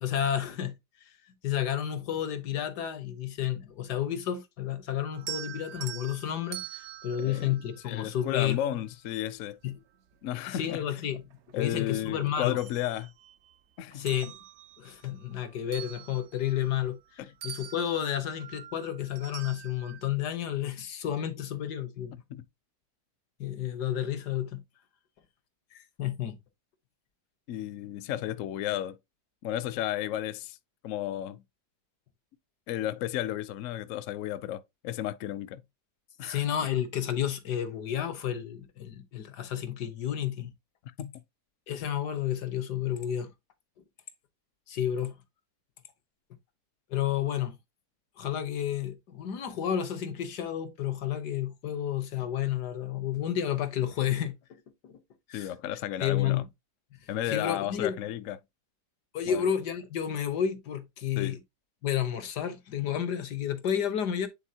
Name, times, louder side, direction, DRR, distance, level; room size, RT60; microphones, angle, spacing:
voice 1, 0.0-0.8 1.4-8.6 9.6-9.8 10.5-11.2 11.6-12.6 13.9-14.4 14.8-22.2 23.4-24.6 25.7-26.4 36.2-40.5 41.7-43.3 44.7-45.2 46.9-47.6 48.2-54.4 54.8-55.0 55.3-55.5 56.0-56.5 57.0-58.0 59.1-61.4 61.8-64.3, left 10 dB, 85° left, 1.7 m, -31 dB
sound 1, 5.1-8.5 10.1-10.2 10.7-12.0 12.3-13.6 13.9-17.1 17.4-20.1, right 11 dB, 65° right, 0.7 m, -45 dB
voice 2, 7.2-7.5 7.8-9.6 10.2-10.8 11.5-13.1 13.8-14.1 17.2-17.3 22.3-22.4 27.5-29.0 29.4-30.6 30.8-31.4 32.7-35.6 36.2-36.4 41.0-41.1 55.3-56.4 57.1-58.4 59.3-59.4 61.2-61.4, left 12 dB, 65° left, 0.8 m, -33 dB
8.9 x 4.1 x 2.8 m
omnidirectional pair, 1.7 m